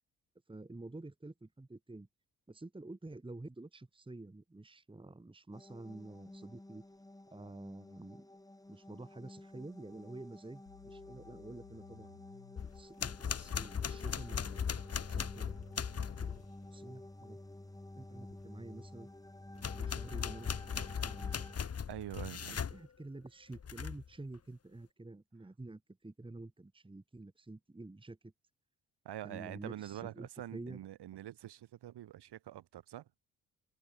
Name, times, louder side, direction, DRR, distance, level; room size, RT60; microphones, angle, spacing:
voice 1, 0.5-2.1 2.5-6.8 7.3-8.3 8.7-12.2 12.7-14.8 15.1-15.7 16.2-16.5 16.7-17.4 17.9-19.1 19.7-20.6 21.0-21.5 22.4-28.3 29.2-30.8, right 2 dB, 10° right, 1.6 m, -49 dB
sound 1, 5.5-21.6, left 1 dB, 10° left, 1.6 m, -52 dB
sound 2, 10.7-12.6 14.5-16.5 18.3-18.4, left 27 dB, 85° left, 6.3 m, -59 dB
sound 3, 12.6-16.4 19.6-22.8 23.5-24.1, left 7 dB, 35° left, 1.3 m, -38 dB
voice 2, 21.9-22.6 29.0-33.1, right 12 dB, 65° right, 4.8 m, -45 dB
hypercardioid pair, 40°, 43 cm